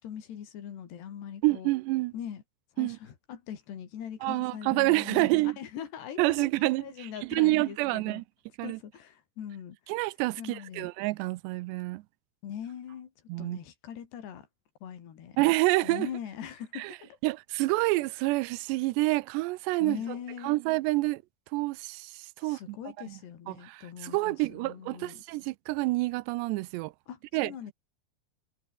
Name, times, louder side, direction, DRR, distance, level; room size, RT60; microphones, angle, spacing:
voice 1, 0.0-1.7 2.1-2.4 2.7-5.3 5.6-8.2 8.6-9.8 10.4-10.9 12.4-13.1 13.4-14.5 14.8-15.4 15.8-17.2 19.8-20.6 22.4-25.2 27.1-27.7, left 9 dB, 75° left, 5.0 m, -41 dB
voice 2, 1.4-2.1 2.8-3.0 4.2-5.6 6.2-8.2 8.6-8.8 9.9-12.0 13.3-13.6 15.4-16.1 16.7-16.9 17.2-20.0 20.4-21.2 21.5-22.8 23.1-23.2 23.5-26.9 27.3-27.5, right 21 dB, 90° right, 2.9 m, -28 dB
omnidirectional pair, 4.8 m